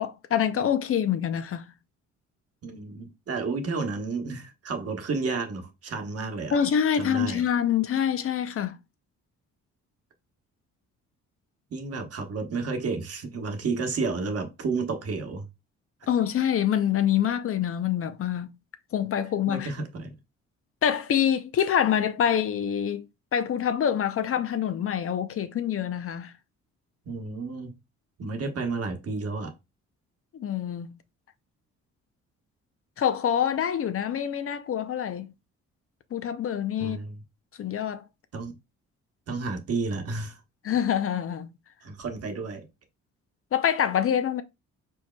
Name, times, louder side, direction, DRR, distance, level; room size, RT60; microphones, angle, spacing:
voice 1, 0.0-1.7 6.5-8.8 16.1-18.5 18.9-19.7 20.8-23.0 23.3-26.3 30.3-31.0 33.0-35.3 36.1-37.0 37.6-38.0 40.6-41.5 43.5-44.4, left 9 dB, 45° left, 0.6 m, -26 dB
voice 2, 2.6-6.6 7.0-7.4 11.7-15.4 19.5-20.2 27.1-27.8 28.2-29.5 36.8-37.2 38.3-38.5 39.3-40.4 41.8-42.7, right 4 dB, 50° right, 1.1 m, -31 dB
4.6 x 4.4 x 2.2 m
cardioid pair, 90°, 30 cm